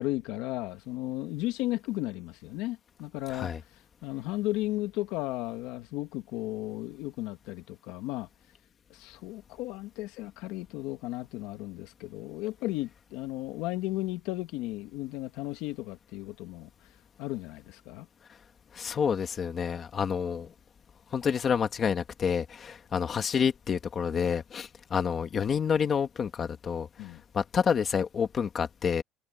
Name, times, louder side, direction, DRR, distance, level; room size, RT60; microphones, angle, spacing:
voice 1, 0.0-3.5 4.0-8.3 8.9-16.7 17.2-18.1 27.0-27.2, left 17 dB, 80° left, 1.8 m, -34 dB
voice 2, 18.7-20.5 21.1-26.9 27.3-29.0, left 7 dB, 25° left, 1.4 m, -28 dB
cardioid pair, 175°, 0 cm